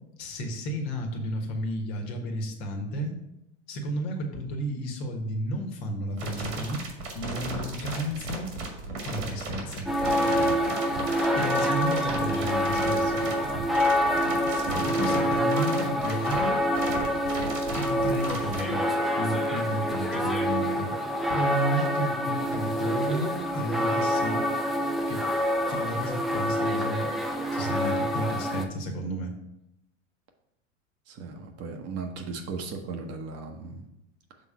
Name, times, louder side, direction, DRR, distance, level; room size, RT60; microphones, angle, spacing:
voice 1, 0.2-3.1 3.7-6.8 7.1-8.5 9.0-9.9 11.3-13.2 14.7-16.6 17.7-18.8 19.2-20.9 21.3-24.4 25.1-25.2 25.7-27.1 27.5-29.3, equal, 55° left, 3 dB, 1.5 m, -32 dB
sound 1, 6.2-18.6, right 3 dB, 75° right, 2.0 m, -35 dB
sound 2, 9.9-28.6, equal, ahead, 0.6 m, -27 dB
voice 2, 14.5-15.3 31.1-33.8, right 4 dB, 40° right, 4 dB, 1.0 m, -37 dB
6.1 x 3.7 x 5.6 m, 0.85 s
hypercardioid pair, 100°, 38 cm